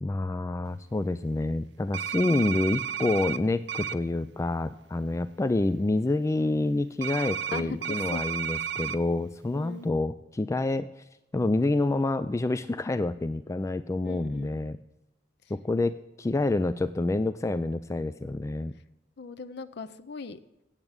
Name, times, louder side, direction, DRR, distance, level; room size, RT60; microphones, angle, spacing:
voice 1, 0.0-11.0 11.3-14.8 15.5-18.7, left 2 dB, 15° left, 12 dB, 0.3 m, -28 dB
sound 1, 1.9-3.4 3.7-3.9 7.0-9.0, right 8 dB, 80° right, 0.6 m, -32 dB
voice 2, 7.5-8.2 9.5-9.9 14.0-14.6 19.2-20.4, left 4 dB, 65° left, 10 dB, 0.6 m, -39 dB
8.9 x 7.4 x 8.0 m, 0.96 s
head